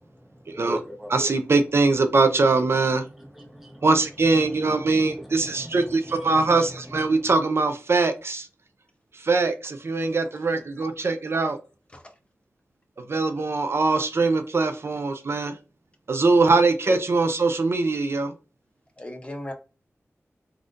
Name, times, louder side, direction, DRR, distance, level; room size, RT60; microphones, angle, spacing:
voice 1, 0.0-1.3 3.0-3.9 4.3-7.3, equal, 5° right, 1.0 m, -40 dB
voice 2, 1.1-3.0 3.8-8.5 9.2-11.6 13.1-15.5 16.1-18.3, right 3 dB, 55° right, 0.4 m, -22 dB
voice 3, 19.0-19.5, left 1 dB, 25° left, 0.8 m, -37 dB
3.4 x 2.4 x 2.5 m
wide cardioid pair, 70°, 5 cm